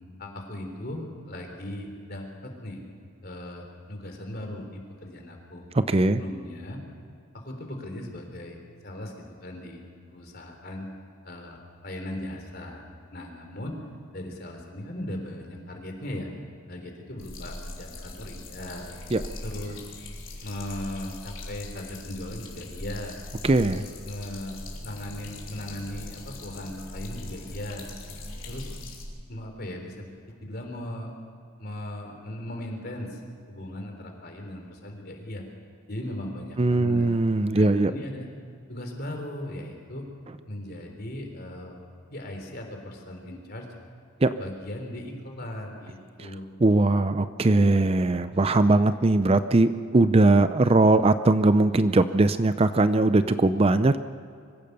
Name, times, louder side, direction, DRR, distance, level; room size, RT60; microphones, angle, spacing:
voice 1, 0.2-2.9 3.2-5.7 6.1-6.8 7.3-9.8 10.1-10.9 11.2-12.8 13.1-13.8 14.1-16.3 16.7-18.9 19.4-19.9 20.4-23.1 23.6-24.6 24.8-27.8 28.5-28.7 29.3-31.1 31.6-33.2 33.5-35.4 35.9-37.1 37.5-38.3 38.7-40.1 40.5-41.8 42.1-43.7 44.4-46.5, left 1 dB, 45° left, 3 dB, 3.7 m, -38 dB
voice 2, 5.7-6.2 19.1-19.2 23.4-23.8 36.6-37.9 44.2-44.3 46.2-46.3 46.6-54.0, right 2 dB, 30° right, 11 dB, 0.5 m, -20 dB
sound 1, 17.2-29.0, left 2 dB, 65° left, 4.1 m, -41 dB
sound 2, 18.7-21.0 24.6-29.1, equal, 20° left, 2.2 m, -51 dB
24.5 x 15.5 x 6.8 m, 2.4 s
head